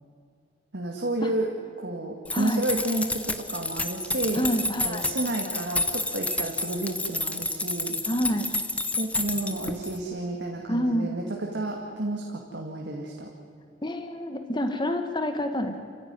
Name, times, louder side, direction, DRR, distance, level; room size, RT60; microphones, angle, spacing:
voice 1, 0.7-1.5 1.8-4.5 4.8-7.9 9.0-13.3, right 1 dB, 75° right, 1 dB, 2.2 m, -31 dB
voice 2, 2.3-2.6 4.3-5.1 8.0-8.5 10.7-11.2 13.8-15.8, equal, 25° left, 7 dB, 1.3 m, -28 dB
sound 1, 2.3-10.0, left 2 dB, 10° left, 1.1 m, -30 dB
28.5 x 15.5 x 9.5 m, 2.4 s
head